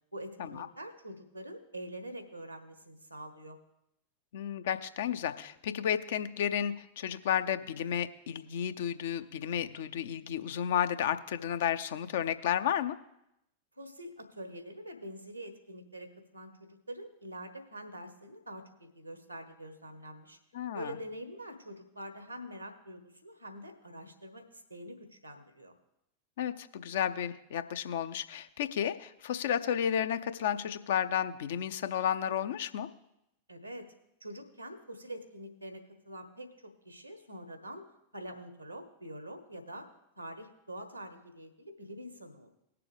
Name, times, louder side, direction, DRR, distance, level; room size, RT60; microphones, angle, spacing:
voice 1, 0.1-3.6 13.8-20.4 20.7-25.7 33.5-33.9 34.2-37.9 38.1-39.9 40.2-42.5, equal, 85° right, 8 dB, 1.2 m, -45 dB
voice 2, 4.3-13.0 20.5-20.9 26.4-32.9, left 9 dB, 60° left, 11 dB, 0.5 m, -32 dB
18.5 x 6.8 x 3.4 m, 0.82 s
figure-of-eight pair, 90°, 0 cm